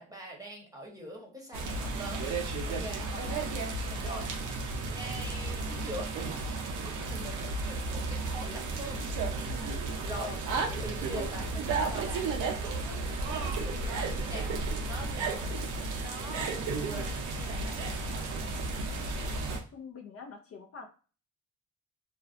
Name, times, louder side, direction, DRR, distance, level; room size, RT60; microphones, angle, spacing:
voice 1, 0.0-2.3 2.7-3.2 4.0-4.3 4.8-6.1 6.8-9.1 10.0-10.4 10.7-14.5 14.8-15.6 16.0-18.3, right 1 dB, 10° right, 0 dB, 0.9 m, -43 dB
sound 1, 1.5-19.6, right 3 dB, 80° right, 0.6 m, -33 dB
voice 2, 3.1-3.4 4.0-4.2 7.1-7.4 10.2-10.4 19.5-20.9, left 3 dB, 50° left, 4 dB, 0.5 m, -44 dB
2.4 x 2.2 x 2.4 m, 0.37 s
cardioid pair, 90°, 30 cm